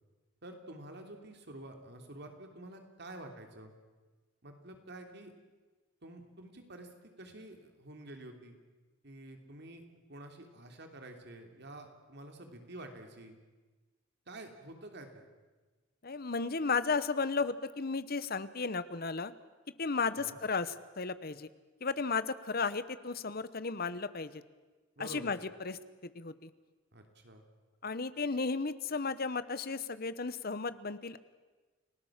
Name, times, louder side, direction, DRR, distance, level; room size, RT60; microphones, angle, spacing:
voice 1, 0.4-3.7 4.4-5.3 6.0-6.9 7.2-8.6 9.0-9.8 10.1-13.4 14.3-15.3 20.2-20.4 25.0-25.3 26.9-27.4, right 1 dB, 55° right, 5 dB, 3.1 m, -49 dB
voice 2, 16.0-19.3 19.8-21.5 21.8-24.4 25.0-25.8 26.0-26.5 27.8-31.2, left 4 dB, 50° left, 14 dB, 1.0 m, -34 dB
29.5 x 18.0 x 7.4 m, 1.3 s
head